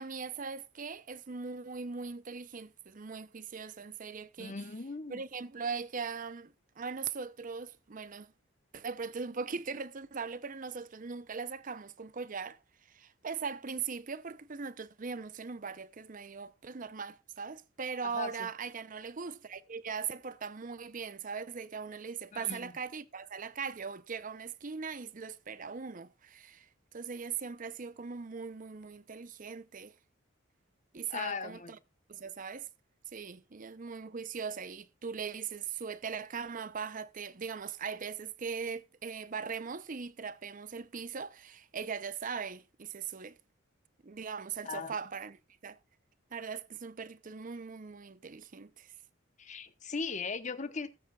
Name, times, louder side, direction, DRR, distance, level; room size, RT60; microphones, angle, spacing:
voice 1, 0.0-4.6 5.1-8.3 8.7-12.6 12.9-29.9 30.9-31.8 32.1-32.7 33.1-43.4 44.0-45.8 46.3-48.9, right 5 dB, 40° right, 0.6 m, -40 dB
voice 2, 4.4-5.2 18.1-18.5 22.3-22.7 31.1-31.7 44.6-44.9 49.4-50.9, left 4 dB, 35° left, 1.0 m, -38 dB
18.0 x 8.7 x 2.4 m
head